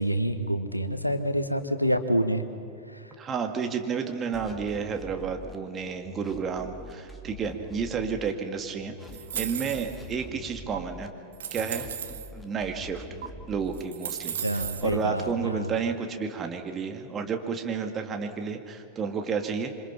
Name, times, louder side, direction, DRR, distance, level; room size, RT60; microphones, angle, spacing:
voice 1, 0.0-2.4 2.9-3.1 14.4-15.7, equal, 90° left, 10 dB, 1.3 m, -27 dB
voice 2, 3.2-8.9 9.4-11.1 11.5-11.9 12.3-13.0 13.5-14.3 14.8-19.7, right 6 dB, 25° right, 5 dB, 2.1 m, -31 dB
sound 1, 4.3-5.6 6.0-8.3 8.8-11.1 11.6-13.8 14.3-15.4, equal, 5° left, 2.3 m, -44 dB
sound 2, 9.1-10.1 10.7-10.8 11.3-12.3 13.2-13.3 13.7-14.9, right 9 dB, 60° right, 1.2 m, -35 dB
27.5 x 25.5 x 5.9 m, 2.7 s
figure-of-eight pair, 90°, 0 cm